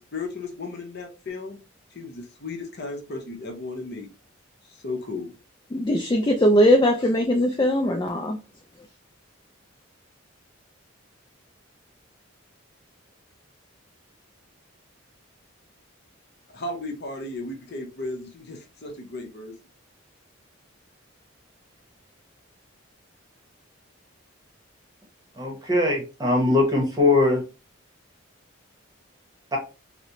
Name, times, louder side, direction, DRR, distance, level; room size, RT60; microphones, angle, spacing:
voice 1, 0.0-1.6 1.9-4.1 4.7-5.3 16.5-19.6, left 2 dB, 50° left, 0.8 m, -35 dB
voice 2, 5.7-8.4, equal, 20° left, 0.3 m, -20 dB
voice 3, 25.4-27.4 29.5-29.6, left 2 dB, 20° right, 0.9 m, -21 dB
4.0 x 2.1 x 2.9 m
head